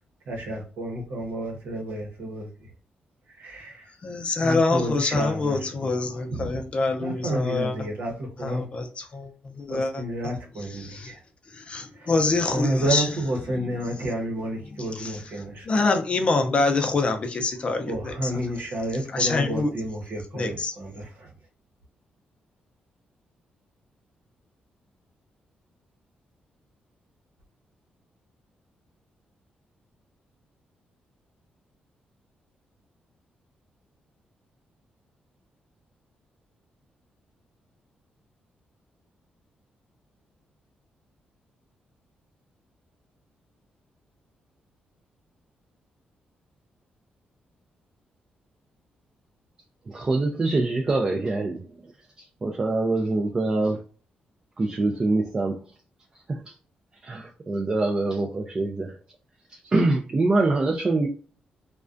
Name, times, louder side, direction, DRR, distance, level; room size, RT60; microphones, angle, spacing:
voice 1, 0.3-2.7 3.3-3.9 4.4-6.6 7.0-8.7 9.7-11.2 11.9-12.1 12.5-15.7 17.9-21.3, right 1 dB, 85° right, 0.8 m, -30 dB
voice 2, 4.0-7.7 8.4-10.0 10.7-11.1 11.5-13.1 13.5-13.7 14.7-15.3 15.7-18.3 19.1-19.7 20.3-20.8, left 3 dB, 35° left, 0.5 m, -26 dB
voice 3, 49.9-51.6 52.2-53.8 54.6-55.6 56.3-56.4 57.0-59.0 59.6-61.1, right 2 dB, 25° right, 0.3 m, -24 dB
2.3 x 2.2 x 2.4 m
cardioid pair, 110°, 3 cm